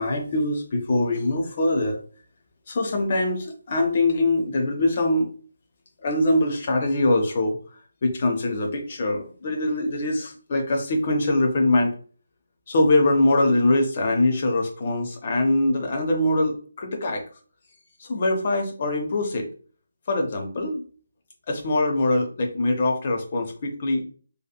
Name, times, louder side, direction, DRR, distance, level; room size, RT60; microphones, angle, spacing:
voice 1, 0.0-2.0 2.7-5.3 6.0-7.6 8.0-11.9 12.7-17.2 18.0-19.5 20.1-20.8 21.5-24.0, left 2 dB, 30° left, 2 dB, 0.6 m, -23 dB
2.8 x 2.4 x 2.3 m, 0.41 s
figure-of-eight pair, 155°, 0 cm